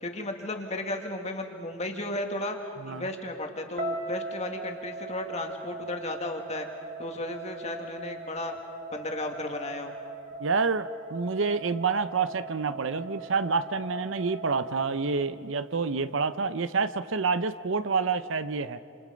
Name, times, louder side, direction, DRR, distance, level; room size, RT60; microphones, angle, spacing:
voice 1, 0.0-2.6 2.8-6.7 7.0-8.6 8.9-9.9, left 1 dB, 35° left, 3 dB, 2.1 m, -34 dB
sound 1, 3.8-15.9, right 3 dB, 40° right, 2.1 m, -40 dB
voice 2, 10.4-18.8, right 4 dB, 70° right, 13 dB, 0.7 m, -28 dB
28.5 x 27.5 x 5.2 m, 2.6 s
head